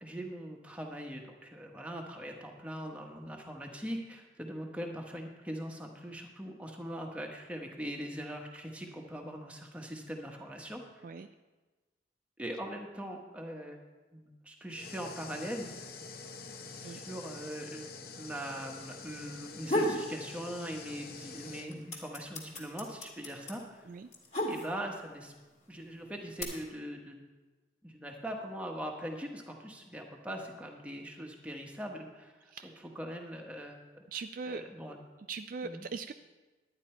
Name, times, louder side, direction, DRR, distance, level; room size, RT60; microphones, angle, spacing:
voice 1, 0.0-11.1 12.4-13.8 14.1-15.7 16.8-23.8 24.5-25.3 25.7-27.2 27.8-32.3 32.9-33.8 34.4-35.0 35.6-35.8, equal, 5° right, 1 dB, 1.1 m, -41 dB
sound 1, 14.7-21.7, left 4 dB, 50° left, 0.8 m, -47 dB
sound 2, 19.4-20.1 20.5-21.2 21.4-25.0 25.8-26.4, equal, 35° left, 1.9 m, -33 dB
voice 2, 32.5-32.9 34.1-34.6 35.3-36.1, right 5 dB, 45° right, 9 dB, 0.3 m, -40 dB
11.5 x 9.8 x 4.4 m, 1.2 s
head